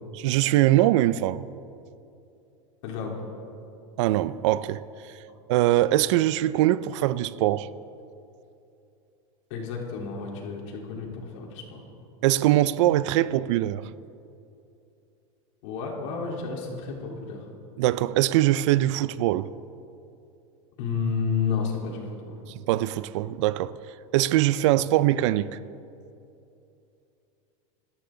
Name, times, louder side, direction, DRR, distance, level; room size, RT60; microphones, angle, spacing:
voice 1, 0.1-1.4 4.0-4.8 5.5-7.7 12.2-13.9 17.8-19.5 22.7-23.7 24.1-25.5, right 14 dB, 65° right, 0.6 m, -22 dB
voice 2, 2.8-3.2 9.5-11.1 11.3-11.8 15.6-17.4 20.8-22.3, left 5 dB, 65° left, 3.8 m, -31 dB
27.0 x 13.5 x 3.9 m
supercardioid pair, 150°, 16 cm